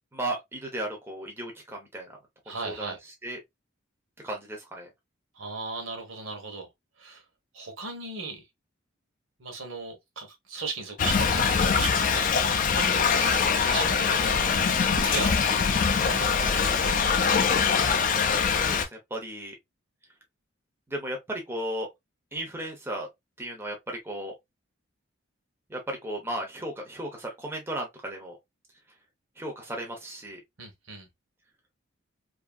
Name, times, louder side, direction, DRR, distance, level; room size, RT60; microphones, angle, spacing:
voice 1, 0.1-2.2 2.5-2.9 3.2-3.4 4.2-4.9 16.4-16.6 18.5-19.5 20.9-21.9 22.3-23.1 23.4-24.3 25.7-28.4 29.4-30.4, right 1 dB, 10° right, 0.6 m, -35 dB
voice 2, 2.5-3.0 5.3-6.7 7.0-7.2 7.5-8.5 9.4-14.6 14.9-17.4 30.6-31.1, right 4 dB, 70° right, 1.0 m, -37 dB
Thunder / Rain, 11.0-18.9, left 6 dB, 40° left, 0.3 m, -23 dB
2.6 x 2.6 x 2.2 m
head